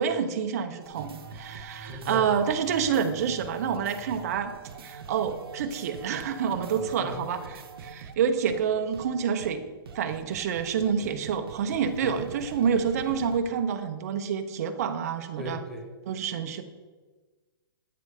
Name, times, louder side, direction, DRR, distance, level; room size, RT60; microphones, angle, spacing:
voice 1, 0.0-4.5 4.8-7.4 7.8-9.6 9.9-15.6 16.1-16.6, right 7 dB, 40° right, 7 dB, 0.5 m, -28 dB
sound 1, 0.8-8.1 8.5-8.6 8.9-9.1 9.4-9.5 9.8-13.4, right 5 dB, 80° right, 0.8 m, -44 dB
voice 2, 1.8-2.3 6.6-7.2 12.0-12.2 15.4-15.9, left 2 dB, 5° left, 0 dB, 0.7 m, -39 dB
8.4 x 3.2 x 4.8 m, 1.3 s
hypercardioid pair, 165°, 12 cm